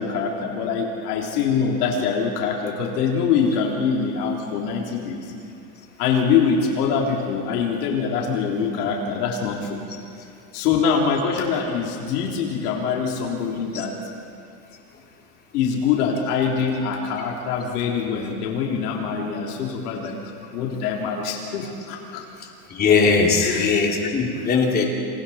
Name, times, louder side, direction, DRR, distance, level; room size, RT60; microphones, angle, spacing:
voice 1, 0.0-5.3 6.0-9.8 10.5-13.9 15.5-20.2 20.5-22.2 23.4-23.7, left 6 dB, 65° left, -1 dB, 3.6 m, -24 dB
voice 2, 22.7-24.9, left 4 dB, 20° left, 0 dB, 2.9 m, -19 dB
27.5 x 27.5 x 4.3 m, 2.6 s
supercardioid pair, 160°, 49 cm